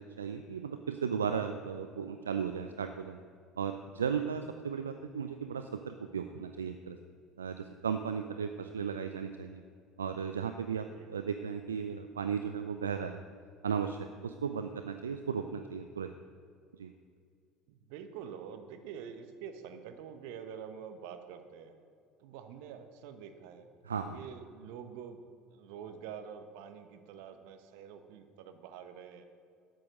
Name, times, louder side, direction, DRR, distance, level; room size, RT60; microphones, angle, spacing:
voice 1, 0.0-3.2 3.6-7.0 7.4-9.6 10.0-13.2 13.6-16.1 16.8-16.9 23.8-24.2, right 7 dB, 80° right, 8 dB, 0.5 m, -35 dB
voice 2, 17.7-21.8 22.2-23.7 24.1-25.2 25.5-29.3, right 7 dB, 60° right, 7 dB, 1.1 m, -46 dB
13.0 x 9.4 x 6.4 m, 2.3 s
figure-of-eight pair, 65°, 0 cm